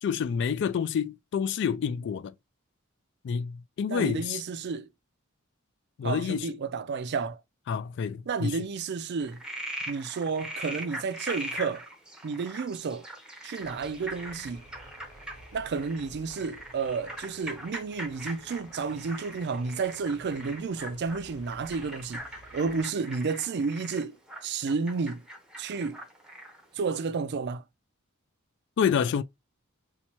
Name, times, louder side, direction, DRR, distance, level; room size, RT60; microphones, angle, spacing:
voice 1, 0.0-2.3 3.2-4.4 6.0-6.5 7.7-8.6 28.8-29.2, left 7 dB, 55° left, 0.3 m, -28 dB
voice 2, 3.9-4.9 6.0-7.4 8.3-9.4 9.9-11.9 12.2-13.1 13.4-14.6 15.5-22.3 22.5-24.2 24.4-25.2 25.6-26.0 26.7-27.6, right 5 dB, 55° right, 0.4 m, -31 dB
Frog, 9.2-26.6, right 1 dB, 5° right, 0.7 m, -41 dB
sound 1, 13.6-22.8, equal, 85° left, 1.1 m, -53 dB
3.0 x 2.2 x 4.1 m
head